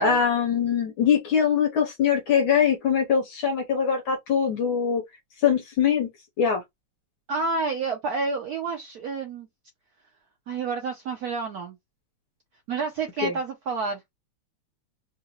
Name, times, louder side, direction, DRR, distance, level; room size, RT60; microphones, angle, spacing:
voice 1, 0.0-5.0 5.4-6.1 6.4-6.6 13.2-13.3, left 7 dB, 70° left, 1.5 m, -22 dB
voice 2, 7.3-9.5 10.5-11.8 12.7-14.0, right 4 dB, 75° right, 0.8 m, -29 dB
3.7 x 2.5 x 2.9 m
omnidirectional pair, 2.4 m